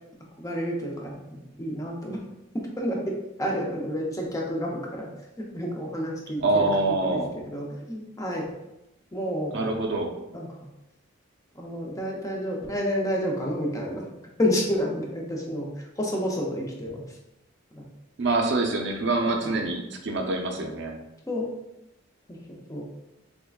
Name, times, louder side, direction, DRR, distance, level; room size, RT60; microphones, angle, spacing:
voice 1, 0.4-2.2 2.5-5.1 5.4-6.7 7.5-8.4 9.1-9.7 10.3-10.6 11.6-14.0 14.4-17.0 17.7-17.8 19.2-19.5 21.3-21.5 22.7-22.9, equal, 15° left, -1 dB, 0.5 m, -30 dB
voice 2, 6.4-7.3 9.5-10.1 18.2-21.0, right 2 dB, 60° right, 2 dB, 0.5 m, -25 dB
3.6 x 3.3 x 2.3 m, 0.91 s
head